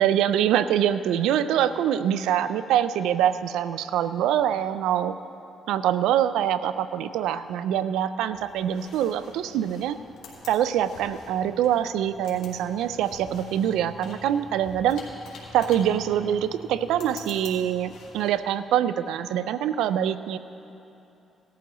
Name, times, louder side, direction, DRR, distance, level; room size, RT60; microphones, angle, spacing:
voice 1, 0.0-5.1 5.7-10.0 10.5-15.0 15.5-20.4, right 10 dB, 90° right, 13 dB, 0.4 m, -24 dB
sound 1, 8.3-18.3, left 3 dB, 75° left, 2.9 m, -46 dB
17.5 x 13.0 x 3.0 m, 2.9 s
cardioid pair, 90°, 0 cm